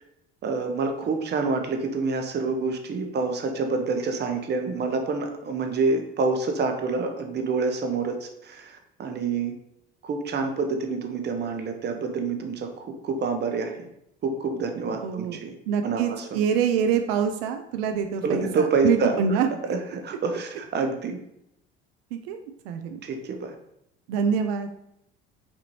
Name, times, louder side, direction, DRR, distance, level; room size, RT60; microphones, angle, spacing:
voice 1, 0.4-9.5 10.0-13.9 14.2-15.5 15.8-16.4 18.2-19.2 19.7-19.8 20.0-21.2 23.0-23.5, right 4 dB, 30° right, 5 dB, 0.8 m, -27 dB
voice 2, 15.0-15.4 15.7-19.5 22.1-22.4 22.6-23.0 24.1-24.7, right 7 dB, 65° right, 6 dB, 0.5 m, -25 dB
5.2 x 2.7 x 3.0 m, 0.77 s
figure-of-eight pair, 60°, 32 cm